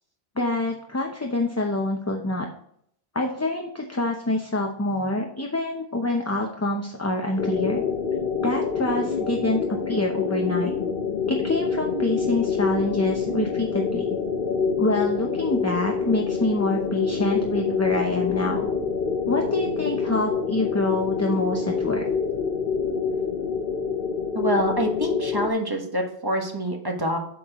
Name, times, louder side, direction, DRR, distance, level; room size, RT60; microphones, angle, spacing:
voice 1, 0.4-2.5 3.1-7.8 8.4-9.6 9.9-10.7 11.3-14.1 14.8-18.7 19.3-22.0, left 2 dB, 15° left, 1 dB, 0.7 m, -26 dB
sound 1, 7.4-25.5, left 5 dB, 60° left, 1.1 m, -26 dB
voice 2, 24.3-27.2, equal, 20° right, 2 dB, 1.3 m, -26 dB
8.5 x 6.3 x 3.0 m, 0.67 s
omnidirectional pair, 1.1 m